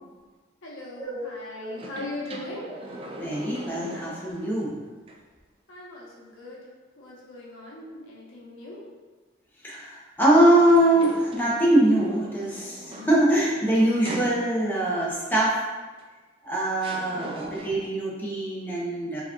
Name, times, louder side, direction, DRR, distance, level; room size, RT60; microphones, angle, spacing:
voice 1, 0.6-2.7 5.7-6.7 7.0-8.8 17.0-17.5, left 2 dB, 85° left, -5 dB, 0.9 m, -40 dB
sound 1, 1.7-4.6 5.1-5.2 10.5-14.9 16.0-16.1 16.8-18.0, right 1 dB, 30° right, 0.3 m, -40 dB
voice 2, 3.2-4.8 9.6-15.6 16.4-19.2, right 1 dB, 10° left, -6 dB, 0.7 m, -23 dB
4.4 x 2.9 x 2.3 m, 1.3 s
head